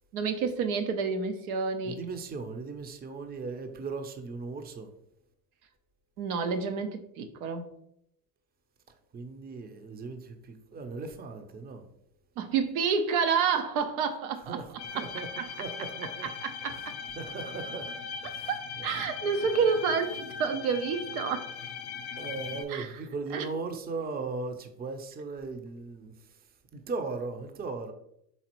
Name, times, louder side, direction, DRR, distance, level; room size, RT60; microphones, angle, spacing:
voice 1, 0.1-1.9 6.2-7.6 12.4-14.6 14.9-15.0 15.4-15.5 16.4-16.9 18.5-21.5 22.7-22.9 23.3-23.4, right 5 dB, 80° right, 0.8 m, -29 dB
voice 2, 1.8-4.9 9.1-11.9 14.5-16.3 16.6-19.1 22.2-27.9, right 4 dB, 20° right, 0.6 m, -38 dB
sound 1, 14.8-22.6, left 6 dB, 60° left, 0.6 m, -39 dB
4.1 x 3.9 x 3.0 m
hypercardioid pair, 70°, 43 cm